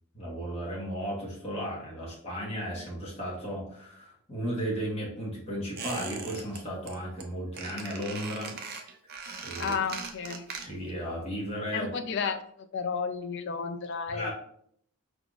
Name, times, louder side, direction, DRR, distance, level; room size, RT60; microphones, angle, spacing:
voice 1, 0.1-8.5 9.4-9.7 10.6-11.9 14.1-14.3, equal, 30° left, -5 dB, 1.3 m, -35 dB
Squeak, 5.8-6.6 6.9-7.2 7.5-11.0 11.2-11.3, right 5 dB, 45° right, 0.5 m, -39 dB
voice 2, 9.6-10.4 11.7-12.4 12.7-14.3, left 5 dB, 50° left, 9 dB, 0.4 m, -32 dB
4.8 x 3.9 x 2.3 m, 0.66 s
head